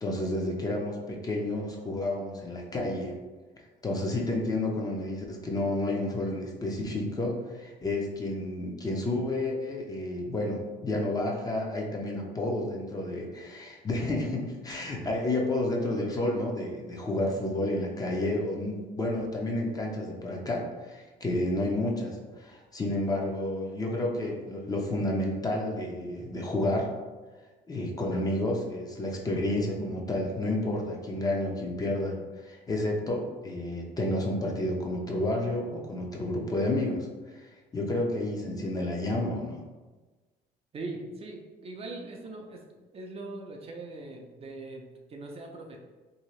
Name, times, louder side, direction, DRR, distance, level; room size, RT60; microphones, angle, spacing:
voice 1, 0.0-3.1 3.8-26.9 27.7-39.6, left 1 dB, 20° left, 0 dB, 0.6 m, -30 dB
voice 2, 40.7-42.6 42.9-45.8, right 2 dB, 35° right, 1 dB, 0.4 m, -41 dB
2.8 x 2.7 x 3.1 m, 1.3 s
cardioid pair, 110°, 17 cm